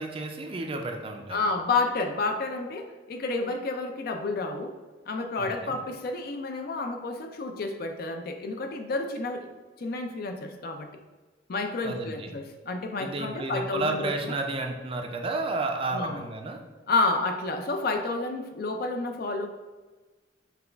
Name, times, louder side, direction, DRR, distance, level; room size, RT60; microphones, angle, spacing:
voice 1, 0.0-1.4 5.4-5.8 11.8-12.3 13.0-16.6, right 2 dB, 30° right, 4 dB, 0.4 m, -32 dB
voice 2, 1.3-4.7 5.1-9.5 9.8-10.9 11.5-14.3 15.9-16.2 16.9-19.5, left 3 dB, 55° left, 5 dB, 0.4 m, -30 dB
5.8 x 2.3 x 3.4 m, 1.2 s
head